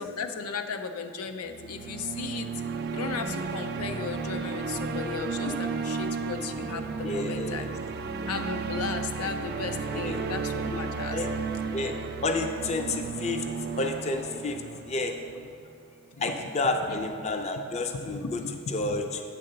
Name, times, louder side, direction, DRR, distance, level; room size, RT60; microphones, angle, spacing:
voice 1, 0.0-2.5 2.9-7.7 8.3-11.2 14.4-14.5 16.1-16.3 16.9-17.1 17.9-19.0, left 5 dB, 85° left, 6 dB, 0.5 m, -35 dB
sound 1, 1.5-15.7, right 5 dB, 45° right, 0.3 m, -33 dB
voice 2, 7.0-7.6 9.9-10.2 10.7-10.8 11.1-11.3 11.7-11.9 12.2-13.4 13.8-14.6 14.9-15.1 16.2-18.4 18.7-19.2, left 2 dB, 30° left, 5 dB, 0.4 m, -30 dB
8.7 x 3.8 x 6.5 m, 2.5 s
head